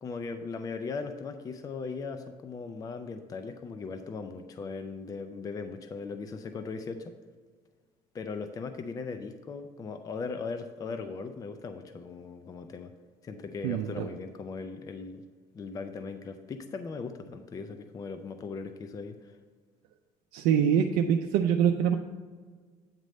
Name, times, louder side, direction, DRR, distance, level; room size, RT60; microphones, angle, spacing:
voice 1, 0.0-7.1 8.1-12.9 13.2-15.2 15.5-19.4, left 4 dB, 25° left, 8 dB, 0.4 m, -38 dB
voice 2, 13.6-14.1 20.3-22.0, right 8 dB, 80° right, 3 dB, 0.5 m, -24 dB
8.9 x 3.1 x 6.4 m, 1.5 s
cardioid pair, 135°, 15 cm